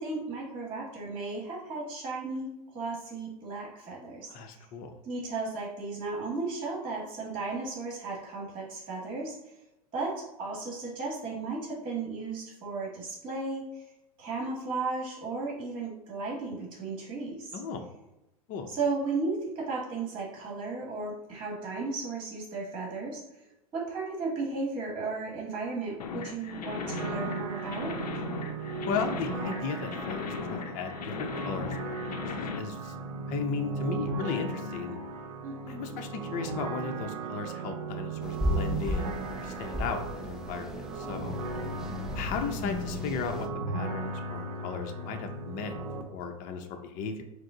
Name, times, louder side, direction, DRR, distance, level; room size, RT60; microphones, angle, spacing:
voice 1, 0.0-4.7 5.0-9.5 9.9-13.9 14.2-17.6 18.7-23.5 23.7-28.0 35.4-36.0 41.5-42.0, right 3 dB, 25° right, -3 dB, 1.3 m, -35 dB
voice 2, 4.3-4.9 17.5-17.8 18.5-18.7 28.9-32.0 32.2-32.9 33.3-35.0 35.7-41.4 42.1-45.8 46.1-47.2, left 5 dB, 45° left, 5 dB, 0.6 m, -36 dB
sound 1, 26.0-32.6, left 6 dB, 85° left, 0.5 m, -38 dB
sound 2, 26.8-46.0, right 3 dB, 85° right, 0.6 m, -37 dB
sound 3, 38.2-43.5, equal, ahead, 0.5 m, -35 dB
4.9 x 2.0 x 3.7 m, 0.92 s
hypercardioid pair, 105°, 20 cm